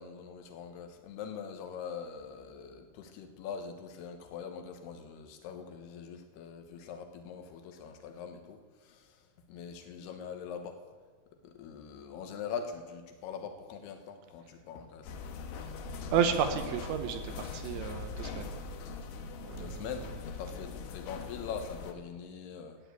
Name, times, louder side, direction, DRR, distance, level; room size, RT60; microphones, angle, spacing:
voice 1, 0.0-10.8 11.4-15.2 19.4-22.8, left 6 dB, 70° left, 5 dB, 3.0 m, -43 dB
sound 1, 15.1-21.9, left 4 dB, 85° left, 3.5 m, -41 dB
voice 2, 16.1-18.5 19.4-19.8, right 7 dB, 75° right, 7 dB, 3.0 m, -31 dB
14.5 x 9.9 x 8.2 m, 1.5 s
omnidirectional pair, 5.4 m